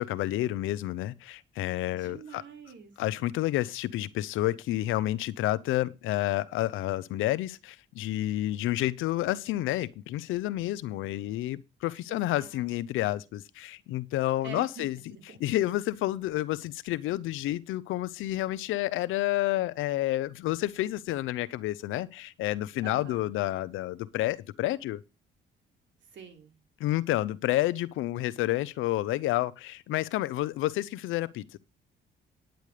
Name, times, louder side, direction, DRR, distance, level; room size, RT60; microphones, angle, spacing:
voice 1, 0.0-2.4 3.0-15.0 15.4-25.0 26.8-31.6, left 15 dB, 90° left, 0.7 m, -30 dB
voice 2, 1.9-2.9 12.1-12.8 14.4-15.4 22.8-23.3 26.1-26.5, right 5 dB, 70° right, 3.4 m, -46 dB
9.4 x 9.2 x 4.9 m
cardioid pair, 90°, 20 cm